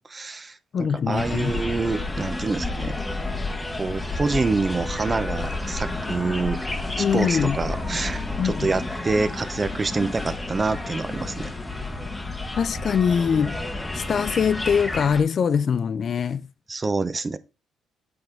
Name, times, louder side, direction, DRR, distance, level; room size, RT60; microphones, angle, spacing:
voice 1, 0.1-2.9 3.8-6.6 7.0-11.5 16.7-17.4, right 3 dB, 30° right, 0.5 m, -26 dB
voice 2, 0.7-1.5 7.0-7.6 8.4-8.7 12.6-13.6 13.9-16.5, left 7 dB, 50° left, 0.4 m, -23 dB
sound 1, 1.2-15.2, left 2 dB, 15° left, 0.9 m, -30 dB
Motor vehicle (road), 3.9-4.1 5.2-9.5, equal, ahead, 1.1 m, -50 dB
7.8 x 3.6 x 4.4 m
cardioid pair, 90°, 0 cm